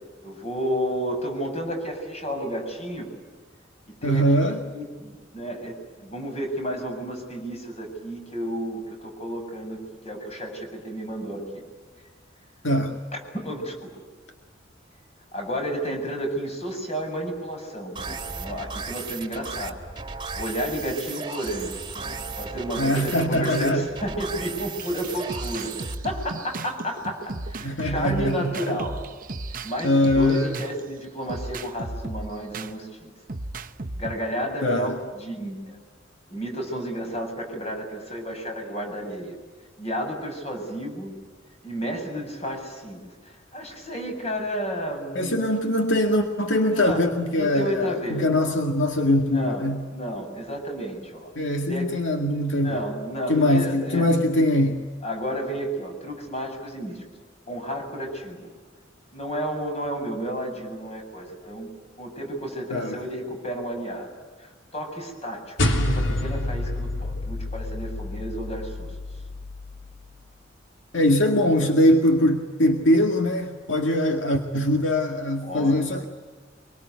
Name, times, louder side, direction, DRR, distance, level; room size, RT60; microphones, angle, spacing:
voice 1, 0.2-3.1 3.9-11.6 13.1-14.0 15.3-21.8 22.4-29.0 29.6-33.1 34.0-35.8 36.3-39.4 39.8-41.1 41.6-45.5 46.5-47.0 47.3-48.3 49.3-51.3 51.7-51.9 52.5-54.1 55.0-57.0 57.5-58.5 59.1-61.7 62.0-64.1 64.4-68.9 75.4-75.8, equal, 35° left, 3 dB, 7.4 m, -32 dB
voice 2, 4.0-4.6 12.6-13.0 22.8-23.9 27.6-28.8 29.8-30.6 34.6-34.9 45.2-49.8 51.4-52.8 53.3-54.9 62.7-63.0 70.9-76.1, left 1 dB, 75° left, 4 dB, 2.0 m, -22 dB
sound 1, 18.0-26.0, right 4 dB, 25° right, 2.1 m, -35 dB
sound 2, 24.8-30.8 31.3-32.7 33.3-34.1, right 2 dB, 45° right, 1.0 m, -35 dB
sound 3, 65.6-70.2, left 1 dB, 90° left, 3.2 m, -28 dB
25.5 x 23.5 x 9.5 m, 1.4 s
head